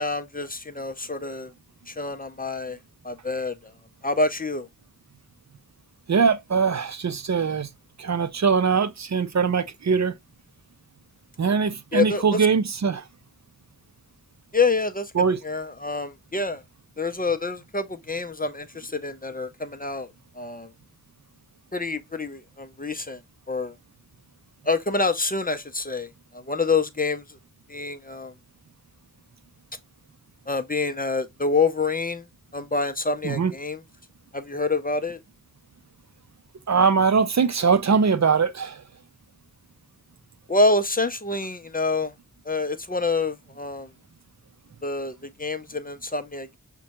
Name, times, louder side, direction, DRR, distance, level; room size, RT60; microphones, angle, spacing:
voice 1, 0.0-1.5 1.9-2.8 3.0-3.7 4.0-4.7 11.9-12.5 14.5-15.1 15.4-16.6 17.0-20.1 20.4-20.7 21.7-23.2 23.5-23.7 24.7-26.1 26.3-27.4 27.7-28.3 30.5-32.2 32.5-33.8 34.3-35.2 40.5-42.1 42.5-43.9 44.8-46.6, left 3 dB, 25° left, 0.5 m, -27 dB
voice 2, 6.1-7.7 8.0-10.1 11.4-13.0 15.1-15.4 33.2-33.5 36.7-38.8, right 5 dB, 55° right, 0.5 m, -22 dB
6.1 x 2.2 x 2.9 m
wide cardioid pair, 65°, 34 cm